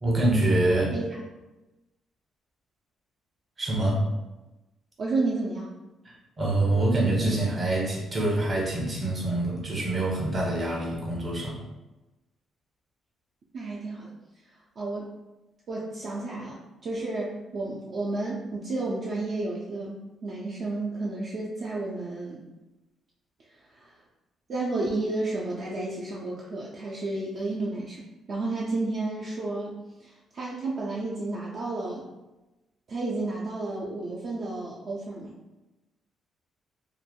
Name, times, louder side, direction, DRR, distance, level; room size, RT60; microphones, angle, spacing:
voice 1, 0.0-0.9 3.6-4.0 6.0-11.6, right 2 dB, 35° right, -3 dB, 1.0 m, -25 dB
voice 2, 5.0-5.7 13.5-14.1 14.4-15.1 15.7-22.4 23.5-24.0 24.5-28.0 28.3-29.7 30.0-32.0 32.9-35.3, right 2 dB, 60° right, -5 dB, 0.4 m, -32 dB
3.1 x 2.1 x 2.3 m, 1.0 s
cardioid pair, 90°, 0 cm